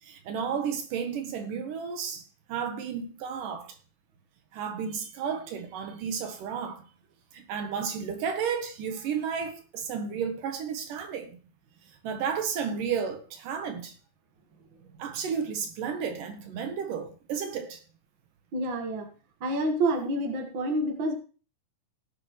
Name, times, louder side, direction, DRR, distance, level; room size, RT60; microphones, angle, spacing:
voice 1, 0.0-2.2 2.5-3.8 4.5-6.9 7.3-11.4 12.0-13.9 15.0-17.8, right 7 dB, 70° right, 2.7 m, -32 dB
voice 2, 18.5-19.1 19.4-21.1, right 1 dB, 45° right, 1.9 m, -28 dB
17.0 x 8.6 x 3.2 m
omnidirectional pair, 4.1 m